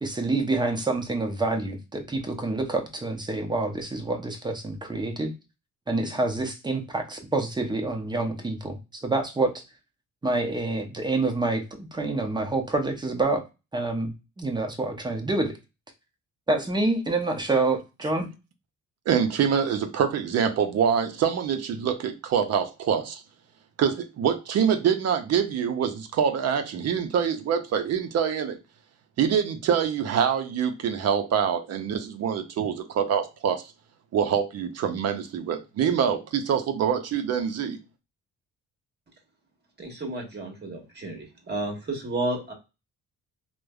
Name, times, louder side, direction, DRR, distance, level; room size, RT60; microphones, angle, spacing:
voice 1, 0.0-5.3 5.9-9.6 10.2-11.6 11.9-13.4 13.7-15.5 16.5-18.3, right 2 dB, 15° right, 0.6 m, -27 dB
voice 2, 19.1-23.2 23.8-28.6 29.2-33.6 34.1-37.8, right 7 dB, 60° right, 0.5 m, -25 dB
voice 3, 39.8-42.5, right 2 dB, 35° right, 1.2 m, -32 dB
3.2 x 2.0 x 2.2 m
cardioid pair, 90°, 30 cm